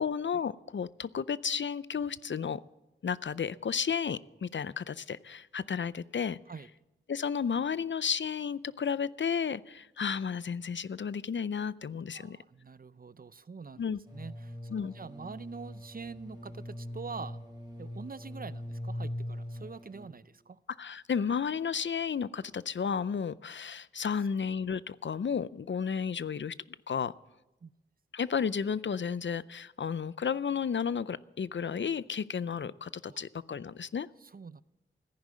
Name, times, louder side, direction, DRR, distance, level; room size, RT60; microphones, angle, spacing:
voice 1, 0.0-2.6 3.0-6.4 7.1-12.4 13.8-14.0 14.7-14.9 20.8-26.5 26.9-27.1 28.1-34.1, left 6 dB, 70° left, 18 dB, 0.5 m, -32 dB
voice 2, 12.1-13.8 14.1-14.6 14.8-17.4 17.8-20.6 27.6-27.7 33.1-33.2 34.2-34.6, right 5 dB, 50° right, 17 dB, 0.5 m, -45 dB
sound 1, 14.1-20.1, left 1 dB, 20° right, 4.2 m, -41 dB
14.5 x 10.5 x 7.5 m, 0.99 s
wide cardioid pair, 55°, 20 cm